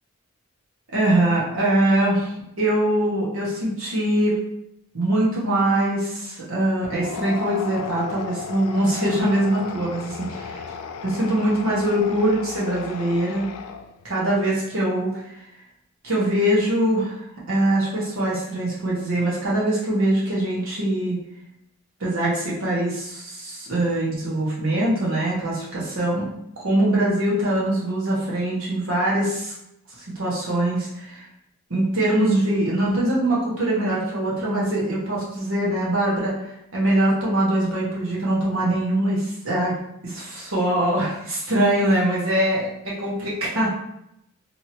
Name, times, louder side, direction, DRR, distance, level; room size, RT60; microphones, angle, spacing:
voice 1, 0.9-4.4 4.9-10.6 11.0-13.5 14.0-15.3 16.0-17.2 17.5-21.2 22.0-26.3 26.6-29.5 30.0-31.3 31.7-36.3 36.7-39.8 40.0-42.6 43.0-43.7, right 1 dB, 65° right, -6 dB, 1.0 m, -22 dB
sound 1, 6.9-14.1, left 6 dB, 80° left, 0.3 m, -35 dB
2.9 x 2.7 x 2.8 m, 0.80 s
head